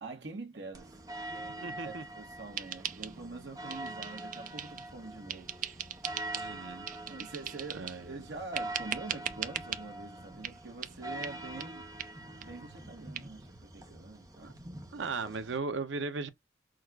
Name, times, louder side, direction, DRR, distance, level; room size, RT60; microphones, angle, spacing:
voice 1, 0.0-0.9 1.3-5.5 7.0-11.9 12.4-14.5, right 3 dB, 70° right, 1.3 m, -45 dB
sound 1, 0.7-15.6, right 1 dB, 20° right, 0.8 m, -44 dB
voice 2, 1.6-2.0 6.3-6.9 7.7-8.2 14.4-14.5 14.9-16.3, right 4 dB, 85° right, 0.7 m, -37 dB
sound 2, 2.6-3.4 3.7-4.9 5.3-6.5 6.9-8.0 8.5-9.8 10.4-10.6 10.8-10.9 11.2-11.3 11.6-11.7 12.0-12.1 12.4-12.5 12.8-12.9 13.1-13.2, right 9 dB, 45° right, 0.5 m, -39 dB
6.2 x 2.4 x 2.3 m
head